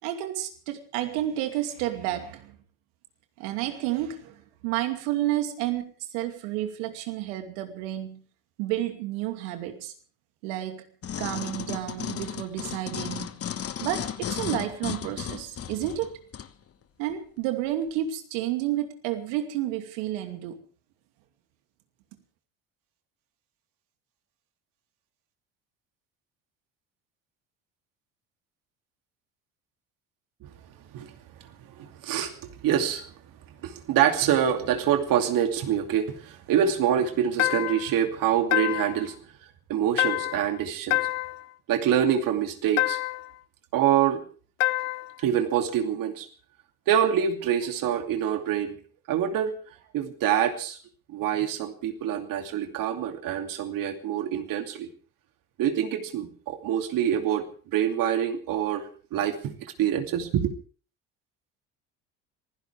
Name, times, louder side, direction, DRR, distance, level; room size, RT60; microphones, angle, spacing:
voice 1, 0.0-2.5 3.4-8.2 8.6-9.9 10.4-10.8 11.2-13.4 13.8-16.2 17.0-20.6, right 13 dB, 80° right, 2.6 m, -31 dB
sound 1, 11.0-16.5 17.1-17.2, left 9 dB, 40° left, 1.3 m, -35 dB
voice 2, 31.4-33.1 33.6-39.1 39.7-41.1 41.7-43.0 43.7-44.2 45.2-46.3 46.9-48.8 49.1-49.5 49.9-50.8 51.1-54.9 55.6-57.5 57.7-60.5, right 9 dB, 65° right, 2.7 m, -26 dB
sound 2, 37.4-37.9 38.5-39.1 40.0-40.5 40.9-41.5 42.8-43.3 44.6-45.1, left 20 dB, 85° left, 0.7 m, -27 dB
26.0 x 16.0 x 3.4 m
hypercardioid pair, 75°, 36 cm